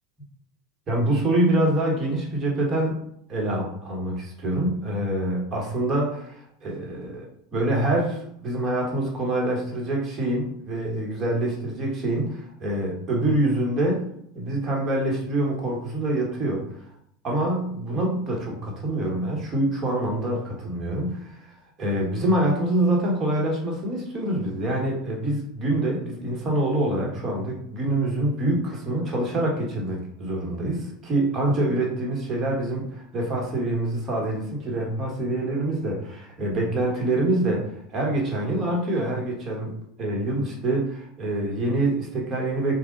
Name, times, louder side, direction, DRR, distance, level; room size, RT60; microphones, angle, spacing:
voice 1, 0.9-3.0 3.3-14.1 14.3-16.6 17.2-21.5 21.8-39.7 40.0-42.8, right 1 dB, 35° right, -2 dB, 1.6 m, -25 dB
3.7 x 2.7 x 3.9 m, 0.72 s
hypercardioid pair, 90°, 0 cm